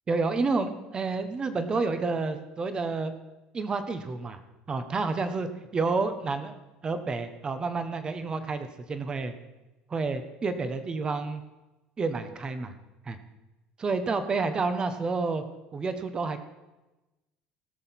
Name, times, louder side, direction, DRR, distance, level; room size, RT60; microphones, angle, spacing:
voice 1, 0.1-3.1 3.5-4.4 4.7-6.5 6.8-9.3 9.9-11.4 12.0-12.7 13.0-13.2 13.8-15.4 15.7-16.4, right 4 dB, 25° right, 10 dB, 1.2 m, -29 dB
17.5 x 6.5 x 6.0 m, 1.1 s
cardioid pair, 115°, 3 cm